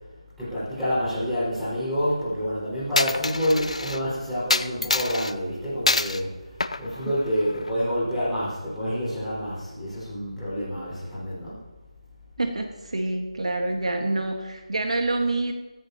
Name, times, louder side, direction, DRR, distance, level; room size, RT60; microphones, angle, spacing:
voice 1, 0.4-6.3 6.8-11.6, equal, ahead, -16 dB, 5.1 m, -28 dB
Coin (dropping), 3.0-4.0 4.5-5.3 5.9-6.2 6.6-7.7, left 2 dB, 75° left, 0.6 m, -26 dB
voice 2, 12.4-15.5, right 2 dB, 70° right, 4 dB, 1.6 m, -27 dB
16.0 x 14.0 x 2.9 m, 1.2 s
figure-of-eight pair, 175°, 3 cm